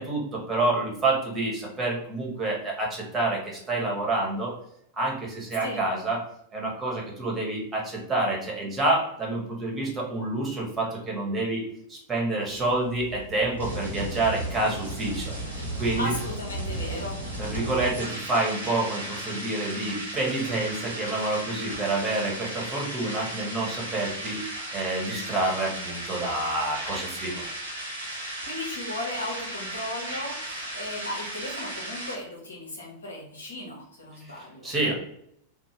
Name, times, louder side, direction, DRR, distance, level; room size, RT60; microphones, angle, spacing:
voice 1, 0.0-4.5 5.0-6.2 6.5-11.6 11.9-15.3 15.8-16.1 17.4-24.4 24.7-27.4 34.2-34.9, right 2 dB, 20° right, -2 dB, 1.0 m, -28 dB
sound 1, 12.5-32.1, right 1 dB, 80° right, 0.9 m, -35 dB
voice 2, 16.0-17.2 28.2-34.9, left 1 dB, 75° left, -2 dB, 0.8 m, -36 dB
2.5 x 2.1 x 3.1 m, 0.72 s
figure-of-eight pair, 90°, 0 cm